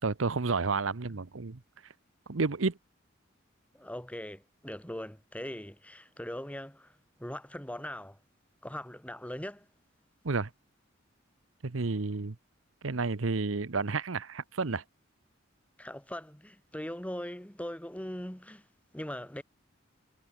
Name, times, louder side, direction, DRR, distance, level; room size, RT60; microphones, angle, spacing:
voice 1, 0.0-1.6 2.3-2.8 10.2-10.5 11.6-12.4 12.8-14.8, right 4 dB, 75° right, 0.9 m, -30 dB
voice 2, 3.7-8.2 8.6-9.7 15.8-18.6 18.9-19.4, left 1 dB, 5° left, 2.1 m, -40 dB
head